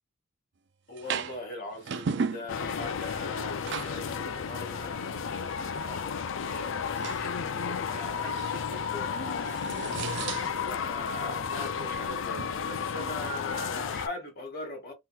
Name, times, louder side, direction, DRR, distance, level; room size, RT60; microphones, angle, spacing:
voice 1, 0.9-9.6 10.6-14.9, left 2 dB, 50° left, 1.8 m, -41 dB
sound 1, 1.0-1.4 1.7-3.0 3.4-4.1 4.4-4.5 7.0-7.3 8.2-8.6 9.1-10.8 12.3-12.5, right 5 dB, 55° right, 0.4 m, -35 dB
sound 2, 2.5-14.1, left 6 dB, 70° left, 0.4 m, -33 dB
3.6 x 2.9 x 2.3 m
head